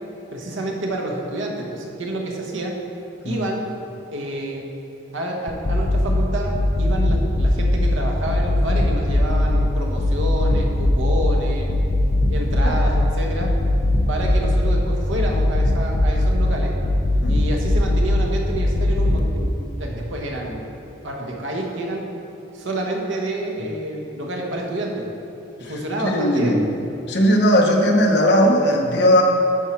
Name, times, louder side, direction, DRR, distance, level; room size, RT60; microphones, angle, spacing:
voice 1, 0.3-2.8 3.2-3.7 4.1-4.7 5.1-11.7 12.3-13.5 14.1-16.7 17.3-20.6 21.0-22.1 22.5-25.1 25.6-26.6, right 1 dB, 85° right, 0 dB, 1.2 m, -28 dB
sound 1, 5.5-6.2 6.5-7.9 8.3-9.6 10.0-11.4 11.7-13.1 13.4-14.8 15.1-16.5 16.8-18.2 18.5-19.2, left 2 dB, 45° left, 0.5 m, -19 dB
voice 2, 26.0-26.7 27.1-29.2, equal, 60° left, 1 dB, 0.9 m, -17 dB
9.9 x 4.6 x 4.4 m, 3.0 s
head